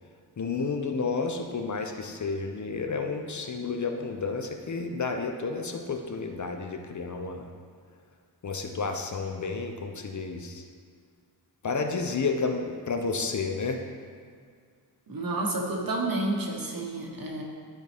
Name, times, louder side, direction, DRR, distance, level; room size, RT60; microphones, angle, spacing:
voice 1, 0.4-7.5 8.4-10.6 11.6-13.8, left 4 dB, 45° left, 4 dB, 0.7 m, -31 dB
voice 2, 15.1-17.4, right 2 dB, 55° right, -1 dB, 1.3 m, -30 dB
12.0 x 4.0 x 3.4 m, 2.1 s
wide cardioid pair, 90°, 41 cm